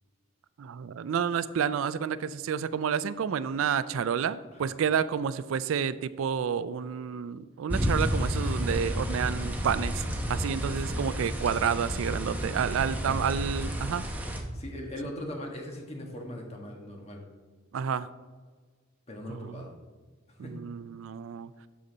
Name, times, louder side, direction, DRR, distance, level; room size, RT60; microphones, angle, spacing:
voice 1, 0.6-10.0 10.3-14.0 17.7-18.1 19.3-19.7 20.4-21.5, right 7 dB, 70° right, 15 dB, 0.3 m, -30 dB
sound 1, 7.7-14.4, equal, 10° right, 0.8 m, -31 dB
voice 2, 13.0-13.4 14.5-17.2 19.1-19.7 20.4-20.5, left 1 dB, 30° left, 1 dB, 1.4 m, -40 dB
12.5 x 5.5 x 3.9 m, 1.5 s
head